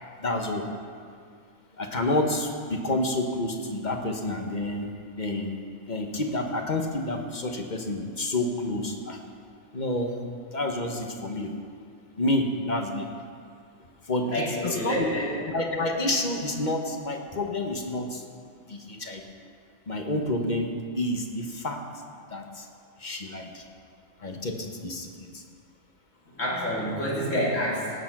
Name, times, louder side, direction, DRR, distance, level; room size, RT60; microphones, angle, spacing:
voice 1, 0.2-0.6 1.8-4.9 5.2-5.5 5.9-9.2 9.7-10.2 10.5-11.6 12.2-13.1 14.1-15.1 15.5-18.2 18.7-19.2 19.9-20.7 21.0-21.8 22.3-22.6 23.0-23.6 24.2-25.1 25.3-25.4, left 1 dB, 40° left, 3 dB, 1.1 m, -29 dB
voice 2, 14.3-15.4 26.4-28.0, equal, 90° left, -5 dB, 3.2 m, -28 dB
17.0 x 6.8 x 6.0 m, 2.2 s
omnidirectional pair, 1.3 m